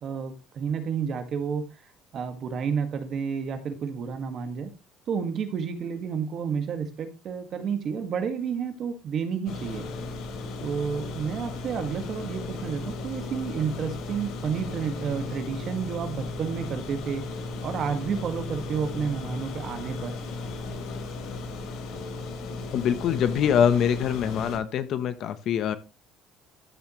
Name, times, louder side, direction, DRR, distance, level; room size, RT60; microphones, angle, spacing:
voice 1, 0.0-1.6 2.1-4.7 5.1-9.8 10.6-17.2 17.6-20.2, right 6 dB, 35° right, 7 dB, 1.8 m, -30 dB
sound 1, 9.5-24.6, left 3 dB, 60° left, 3.1 m, -35 dB
voice 2, 22.7-25.7, left 8 dB, 40° left, 12 dB, 0.9 m, -24 dB
13.5 x 7.0 x 3.1 m, 0.28 s
cardioid pair, 180°, 0 cm